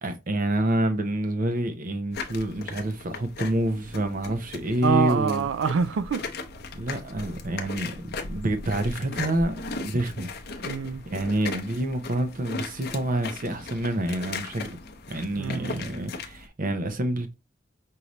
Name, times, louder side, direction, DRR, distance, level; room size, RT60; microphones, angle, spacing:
voice 1, 0.0-5.5 6.7-10.3 11.1-14.8 15.1-17.3, right 1 dB, 45° right, 0.7 m, -28 dB
sound 1, 2.1-16.5, left 4 dB, 55° left, 0.6 m, -37 dB
voice 2, 4.8-6.2 10.6-11.0 15.4-15.8, right 6 dB, 80° right, 0.4 m, -25 dB
5.0 x 2.9 x 3.0 m
head